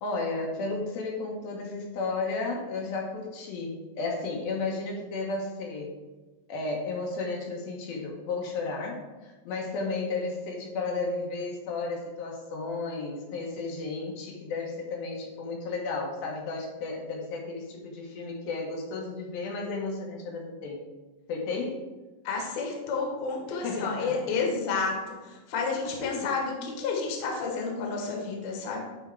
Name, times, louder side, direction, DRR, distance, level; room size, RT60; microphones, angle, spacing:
voice 1, 0.0-5.9 6.5-20.8 21.3-21.8 23.6-24.2 26.0-26.3, left 3 dB, 80° left, 0 dB, 2.8 m, -33 dB
voice 2, 22.2-28.8, left 4 dB, 60° left, 0 dB, 2.1 m, -30 dB
9.8 x 3.5 x 4.5 m, 1.2 s
omnidirectional pair, 4.2 m